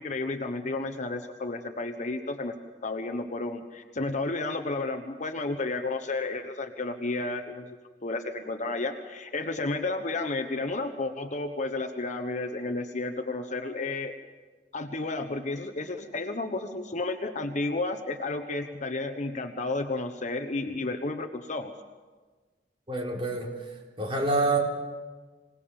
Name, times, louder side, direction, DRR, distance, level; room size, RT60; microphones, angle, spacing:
voice 1, 0.0-2.6 2.8-14.1 14.7-21.7, left 2 dB, 45° left, 6 dB, 1.1 m, -32 dB
voice 2, 22.9-24.6, right 2 dB, 30° right, -1 dB, 4.3 m, -28 dB
26.0 x 19.0 x 7.1 m, 1.4 s
head